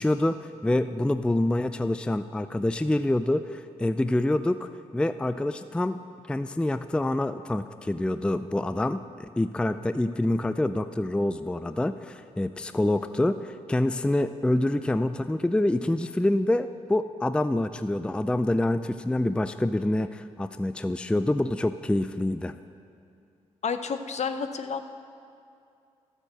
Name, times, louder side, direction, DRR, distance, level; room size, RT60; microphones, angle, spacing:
voice 1, 0.0-6.0 6.3-22.5, left 1 dB, 5° left, 11 dB, 0.4 m, -26 dB
voice 2, 23.6-24.8, left 6 dB, 55° left, 9 dB, 0.8 m, -30 dB
12.0 x 6.7 x 7.5 m, 2.5 s
supercardioid pair, 55°, 14 cm